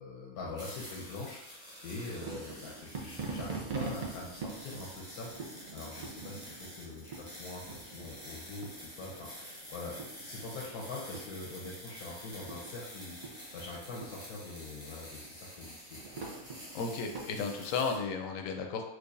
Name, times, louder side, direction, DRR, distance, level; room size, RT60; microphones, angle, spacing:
voice 1, 0.0-16.2, left 3 dB, 90° left, -3 dB, 1.2 m, -44 dB
sound 1, 0.6-18.0, equal, 5° right, 0.7 m, -49 dB
sound 2, 2.0-17.2, right 4 dB, 65° right, 0.4 m, -45 dB
voice 2, 16.7-18.8, left 5 dB, 70° left, 4 dB, 0.9 m, -34 dB
4.5 x 2.5 x 2.5 m, 0.87 s
omnidirectional pair, 1.6 m